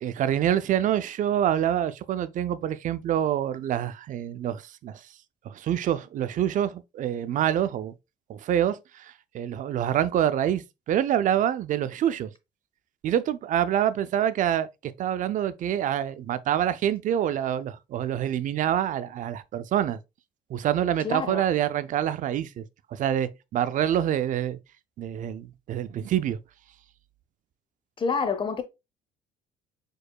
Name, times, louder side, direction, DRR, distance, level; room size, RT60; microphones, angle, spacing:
voice 1, 0.0-5.0 5.5-7.9 8.3-12.3 13.0-20.0 20.5-22.6 22.9-24.6 25.0-26.4, right 10 dB, 50° right, 0.4 m, -26 dB
voice 2, 21.0-21.4 28.0-28.6, left 5 dB, 30° left, 0.8 m, -27 dB
4.7 x 4.4 x 2.3 m
cardioid pair, 110°, 17 cm